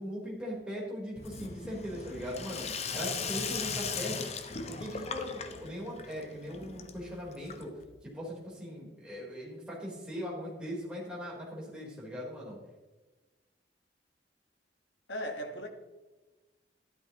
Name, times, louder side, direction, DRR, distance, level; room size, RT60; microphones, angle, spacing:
voice 1, 0.0-4.3 4.7-7.7 8.0-12.6, equal, 5° right, 3.8 m, -40 dB
Sink (filling or washing), 1.2-7.9, left 5 dB, 40° left, 0.8 m, -38 dB
voice 2, 15.1-15.7, equal, 90° left, 1.5 m, -37 dB
13.0 x 11.5 x 3.0 m
head